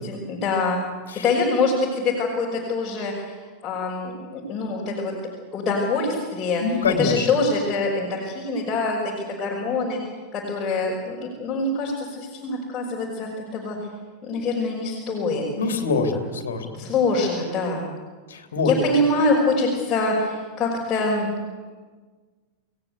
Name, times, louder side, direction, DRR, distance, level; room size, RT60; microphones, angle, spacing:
voice 1, 0.0-0.8 1.1-3.4 3.6-5.1 5.5-6.6 7.0-9.0 9.3-10.0 10.3-13.8 14.2-15.4 16.8-17.9 18.6-21.3, left 3 dB, 25° left, -4 dB, 5.7 m, -24 dB
voice 2, 6.6-7.3 15.6-16.7 18.3-18.7, left 4 dB, 65° left, 5 dB, 3.3 m, -24 dB
29.0 x 18.0 x 8.2 m, 1.4 s
figure-of-eight pair, 90°, 0 cm